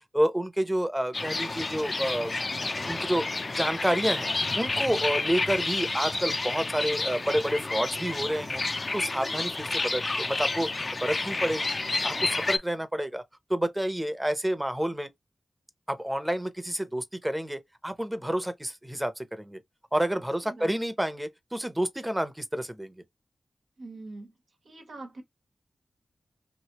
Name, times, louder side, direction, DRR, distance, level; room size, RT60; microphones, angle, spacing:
voice 1, 0.0-2.5 2.9-4.3 4.5-8.6 8.9-13.2 13.5-15.1 15.9-19.6 19.9-23.0, right 1 dB, 15° right, 0.8 m, -29 dB
sound 1, 1.1-12.6, left 3 dB, 50° left, 0.5 m, -30 dB
voice 2, 20.4-20.7 23.8-24.4 24.6-25.2, right 2 dB, 80° right, 1.2 m, -43 dB
3.1 x 2.7 x 2.9 m
cardioid pair, 50°, 0 cm